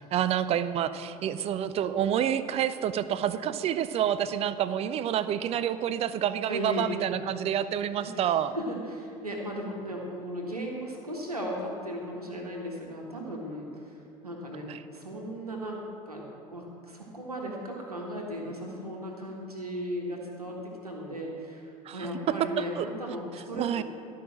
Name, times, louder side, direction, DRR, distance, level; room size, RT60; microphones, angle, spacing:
voice 1, 0.0-8.5 14.7-14.8 21.9-22.0 22.3-22.9 23.5-23.8, right 10 dB, 35° right, 14 dB, 0.5 m, -28 dB
voice 2, 6.5-6.9 7.5-7.6 8.0-14.0 14.2-23.8, equal, 85° right, -1 dB, 1.6 m, -36 dB
13.0 x 5.7 x 7.4 m, 2.6 s
figure-of-eight pair, 70°, 19 cm